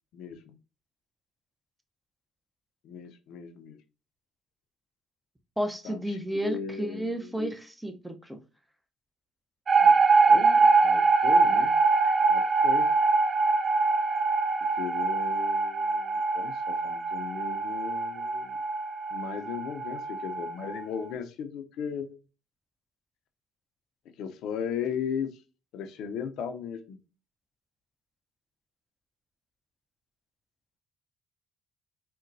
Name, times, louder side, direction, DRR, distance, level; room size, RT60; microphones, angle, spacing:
voice 1, 0.1-0.5 2.8-3.8 5.8-6.0 6.3-7.5 9.8-9.9 10.3-11.7 12.3-12.9 14.8-18.6 19.1-22.2 24.2-25.3 25.7-27.0, left 7 dB, 70° left, 8 dB, 0.5 m, -36 dB
voice 2, 5.6-8.4 12.0-12.1, right 1 dB, 5° right, 6 dB, 0.7 m, -32 dB
sound 1, 9.7-20.8, right 4 dB, 45° right, 0.4 m, -24 dB
3.8 x 2.1 x 2.5 m, 0.32 s
hypercardioid pair, 60°, 0 cm